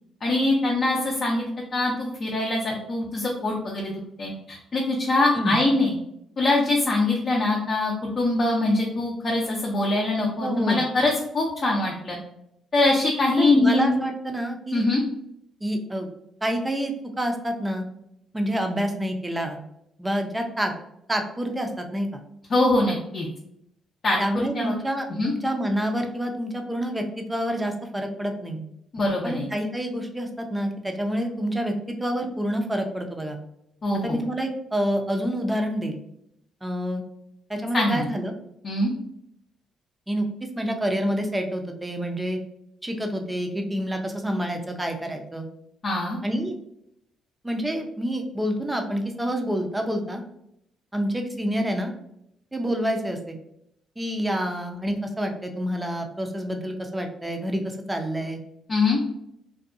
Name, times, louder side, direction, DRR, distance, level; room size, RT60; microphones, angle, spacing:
voice 1, 0.2-1.4 1.7-5.9 6.4-12.2 12.7-13.9 14.7-15.0 22.5-23.3 24.0-24.2 24.5-24.7 25.1-25.3 28.9-29.4 33.8-34.2 37.7-38.1 38.6-38.9 45.8-46.2 58.7-59.0, left 2 dB, 45° left, -3 dB, 0.5 m, -23 dB
voice 2, 10.4-10.8 13.3-14.8 15.6-16.1 16.4-17.8 18.3-19.6 20.0-20.7 21.1-22.2 24.2-28.6 29.2-33.4 34.0-36.0 36.6-37.0 37.5-38.3 40.1-40.3 40.6-42.4 42.8-45.5 46.2-46.5 47.4-50.2 50.9-51.9 52.5-53.4 54.0-58.4, equal, 10° right, 4 dB, 0.5 m, -27 dB
2.6 x 2.2 x 2.5 m, 0.76 s
cardioid pair, 90°, 0 cm